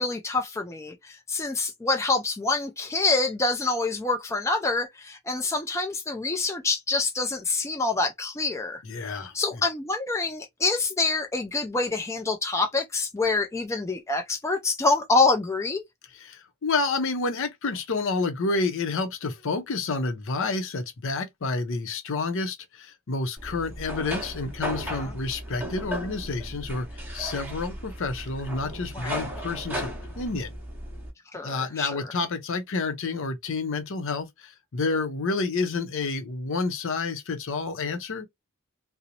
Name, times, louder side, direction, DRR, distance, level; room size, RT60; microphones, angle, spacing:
voice 1, 0.0-8.8 9.3-15.8 25.0-25.1 28.9-29.2 31.3-31.9, left 3 dB, 15° left, 0.4 m, -26 dB
voice 2, 8.8-9.3 16.1-26.9 27.1-29.9 30.2-30.5 31.4-38.3, left 3 dB, 60° left, 0.6 m, -29 dB
sound 1, 23.4-31.1, right 1 dB, 10° right, 0.8 m, -36 dB
2.6 x 2.0 x 2.7 m
head